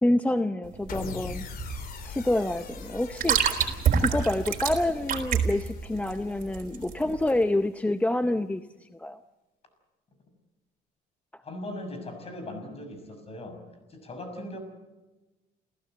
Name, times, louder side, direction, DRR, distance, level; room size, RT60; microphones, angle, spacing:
voice 1, 0.0-1.5 2.0-9.2, left 1 dB, 10° left, 10 dB, 0.7 m, -27 dB
sound 1, 0.6-7.4, right 7 dB, 55° right, 3.8 m, -28 dB
sound 2, 0.9-7.2, left 5 dB, 60° left, 3.2 m, -43 dB
voice 2, 11.4-13.6 13.9-14.6, left 1 dB, 35° left, 7 dB, 6.5 m, -39 dB
29.0 x 15.5 x 7.9 m, 1.1 s
cardioid pair, 110°, 17 cm